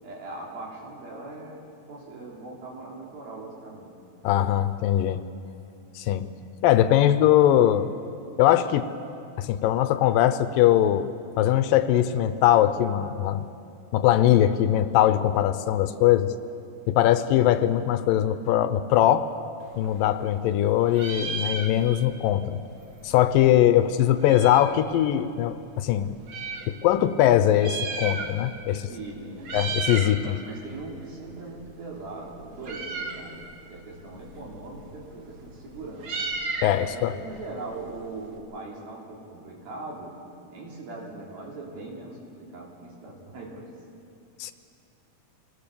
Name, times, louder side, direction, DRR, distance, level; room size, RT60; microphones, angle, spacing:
voice 1, 0.0-1.6 1.9-4.0 23.6-24.1 28.7-29.6 30.1-36.2 36.8-40.2 40.5-43.7, right 2 dB, 80° right, -2 dB, 5.2 m, -40 dB
voice 2, 4.2-5.2 6.0-6.3 6.6-7.9 8.4-8.9 9.4-11.1 11.4-13.4 13.9-16.3 16.9-19.3 19.8-22.6 23.0-26.1 26.7-28.8 29.5-30.3 36.6-37.1 44.4-44.5, left 12 dB, 80° left, 11 dB, 2.3 m, -21 dB
Meow, 19.6-20.6 20.9-22.2 22.5-22.6 22.7-24.8 25.5-26.7 27.4-28.6 28.9-29.1 29.4-30.2 30.5-38.4, right 4 dB, 50° right, 2.3 m, -35 dB
25.5 x 19.0 x 7.0 m, 2.5 s
omnidirectional pair, 4.2 m